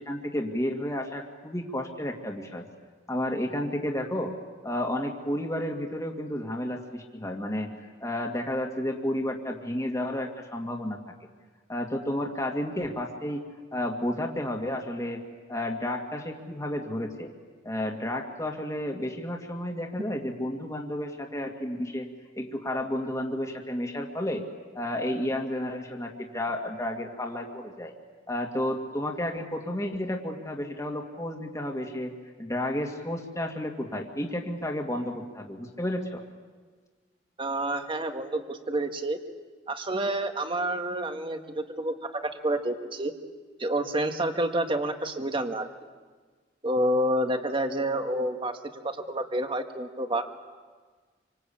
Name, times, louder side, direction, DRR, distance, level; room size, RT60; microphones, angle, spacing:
voice 1, 0.0-2.7 3.1-4.4 4.6-7.7 8.0-11.0 11.7-15.2 15.5-17.3 17.6-22.1 22.4-24.4 24.7-27.9 28.3-32.1 32.4-36.2, left 1 dB, 20° left, 1 dB, 2.3 m, -31 dB
voice 2, 37.4-39.2 39.7-43.1 43.6-45.7 46.6-48.5 48.8-50.2, right 1 dB, 30° right, 6 dB, 1.7 m, -28 dB
27.0 x 25.5 x 8.7 m, 1.4 s
head